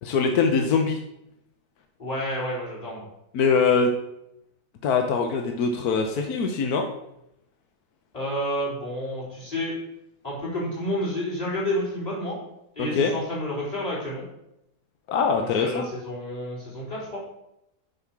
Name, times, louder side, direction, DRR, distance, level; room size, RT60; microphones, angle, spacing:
voice 1, 0.0-1.0 3.3-3.9 4.8-6.9 12.8-13.1 15.1-15.8, left 5 dB, 85° left, 4 dB, 1.4 m, -22 dB
voice 2, 2.0-3.1 8.1-9.7 10.2-12.4 12.8-14.2 15.4-17.2, equal, 25° left, -5 dB, 4.1 m, -30 dB
7.8 x 5.8 x 6.0 m, 0.83 s
omnidirectional pair, 1.6 m